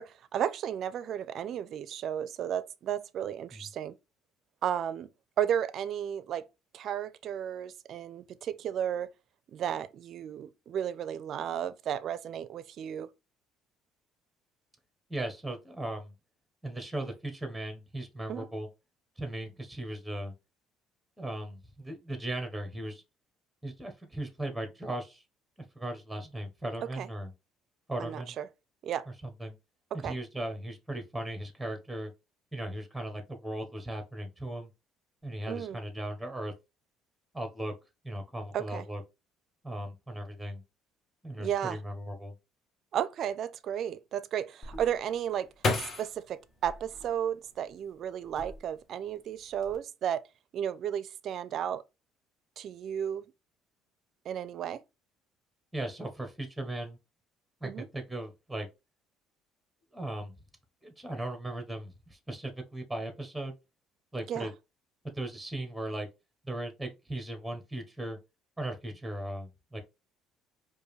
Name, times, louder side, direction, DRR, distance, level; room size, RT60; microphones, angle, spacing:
voice 1, 0.0-3.9 4.6-5.1 5.4-6.4 6.7-9.1 9.5-13.1 18.3-18.5 27.0-27.1 28.0-28.5 28.8-29.1 30.0-30.2 35.5-35.8 38.5-38.8 41.4-41.8 42.9-45.5 45.8-50.2 50.5-51.8 52.6-53.2 54.3-54.8 57.6-57.9 64.3-64.5, right 9 dB, 60° right, 0.4 m, -33 dB
voice 2, 15.1-16.1 16.6-18.7 19.2-20.3 21.2-23.0 23.6-25.2 25.7-27.3 27.9-28.4 29.4-29.6 29.9-32.1 32.5-34.7 35.2-36.5 37.3-37.7 38.0-39.0 39.6-40.6 41.2-42.3 55.7-57.0 57.6-58.7 59.9-60.3 60.8-63.5 64.1-64.5 65.0-66.1 66.4-68.2 68.6-69.8, right 1 dB, 5° right, 1.0 m, -37 dB
sound 1, 44.6-47.7 48.2-49.0 49.3-49.8, left 3 dB, 45° left, 1.2 m, -35 dB
4.7 x 2.6 x 3.2 m
supercardioid pair, 95°, 0 cm